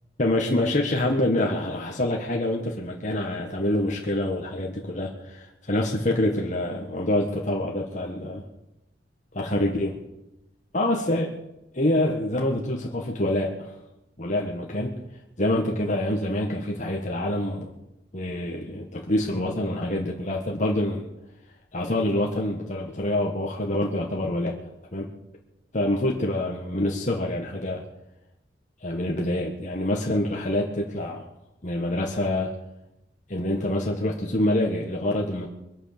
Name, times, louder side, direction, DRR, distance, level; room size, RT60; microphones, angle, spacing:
voice 1, 0.2-8.4 9.3-10.0 10.7-11.4 11.7-13.7 14.2-15.0 15.4-17.7 18.1-21.1 21.7-24.6 24.9-25.1 25.7-27.8 28.8-31.2 31.6-32.5 33.3-35.5, left 1 dB, 45° left, 0 dB, 1.6 m, -26 dB
23.0 x 8.8 x 6.7 m, 0.90 s
head